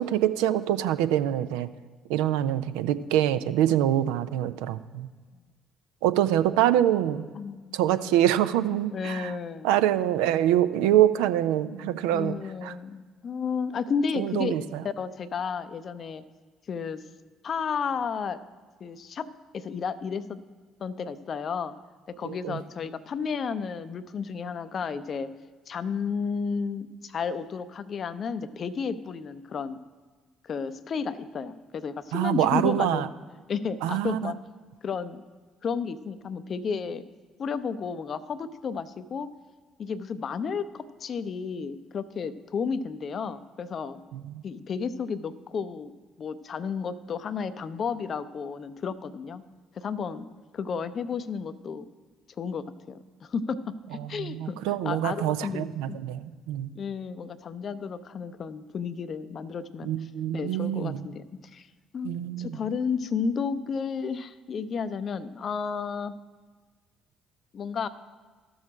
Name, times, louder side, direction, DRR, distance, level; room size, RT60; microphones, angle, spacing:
voice 1, 0.0-1.7 2.1-5.1 6.0-7.2 7.7-9.3 9.6-12.3 12.6-12.7 14.1-14.8 22.2-22.6 32.1-33.1 33.8-34.3 44.1-44.4 54.0-56.7 59.8-61.1 62.0-62.6, right 12 dB, 70° right, 12 dB, 0.4 m, -25 dB
voice 2, 7.3-8.2 8.9-9.7 12.1-14.6 15.0-16.2 16.7-17.0 17.4-18.4 18.8-19.3 19.5-20.4 20.8-21.8 22.1-25.3 25.7-29.9 30.4-33.1 33.5-34.3 34.8-35.2 35.6-37.0 37.4-39.3 39.8-44.0 44.4-45.9 46.2-49.4 49.7-50.3 50.5-51.9 52.4-53.6 53.9-56.0 56.7-61.2 61.5-61.7 61.9-62.1 62.4-66.2 67.5-67.9, left 5 dB, 45° left, 14 dB, 0.5 m, -32 dB
13.0 x 6.3 x 4.9 m, 1.4 s
figure-of-eight pair, 50°, 0 cm